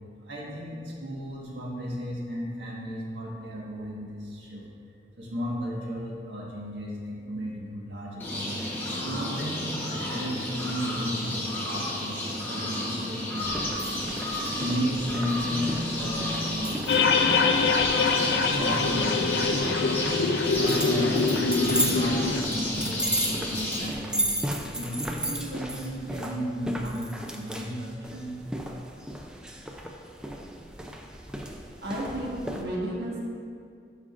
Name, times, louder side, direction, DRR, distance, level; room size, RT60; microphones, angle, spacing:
voice 1, 0.2-4.6 5.2-8.6 9.0-12.2 12.5-14.0 14.4-17.8 18.3-20.1 20.5-21.2 21.5-28.5, equal, 90° right, -4 dB, 1.6 m, -34 dB
sound 1, 8.2-23.9, left 1 dB, 10° left, 1.1 m, -32 dB
sound 2, 13.4-32.6, right 1 dB, 5° right, 0.4 m, -35 dB
sound 3, 16.9-22.4, left 4 dB, 75° left, 0.4 m, -24 dB
voice 2, 31.8-33.2, right 1 dB, 65° right, -4 dB, 1.4 m, -33 dB
12.5 x 4.9 x 2.5 m, 2.3 s
head